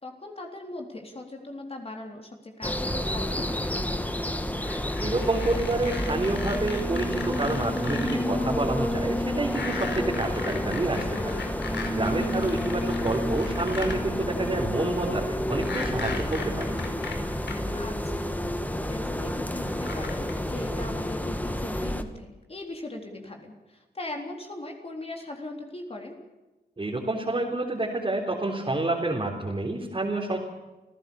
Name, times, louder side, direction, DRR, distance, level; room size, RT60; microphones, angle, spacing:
voice 1, 0.0-3.7 12.2-12.5 17.7-18.4 18.7-26.2, left 2 dB, 35° left, 2 dB, 3.7 m, -39 dB
sound 1, 2.6-22.0, left 1 dB, 10° left, 2.0 m, -30 dB
sound 2, 4.6-8.2 9.4-14.0 15.5-17.6 18.7-18.8 19.7-20.3, left 5 dB, 80° left, 4.7 m, -37 dB
voice 2, 5.0-11.4 11.9-16.7 26.8-30.4, right 2 dB, 30° right, -2 dB, 3.9 m, -28 dB
29.0 x 16.0 x 7.1 m, 1.1 s
wide cardioid pair, 105°, 18 cm